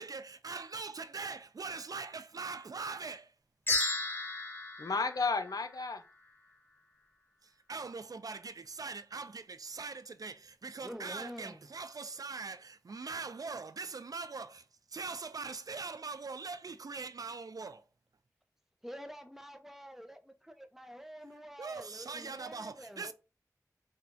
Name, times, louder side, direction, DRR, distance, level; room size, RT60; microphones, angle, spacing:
voice 1, 0.0-3.3 7.4-17.8 21.6-23.1, right 4 dB, 65° right, 0.3 m, -42 dB
sound 1, 3.7-6.1, left 2 dB, 35° left, 0.9 m, -35 dB
voice 2, 4.8-6.0 23.0-23.1, left 4 dB, 70° left, 0.5 m, -32 dB
voice 3, 10.8-11.7 18.8-23.0, equal, 5° right, 0.6 m, -47 dB
4.3 x 2.3 x 2.5 m
wide cardioid pair, 50°, 7 cm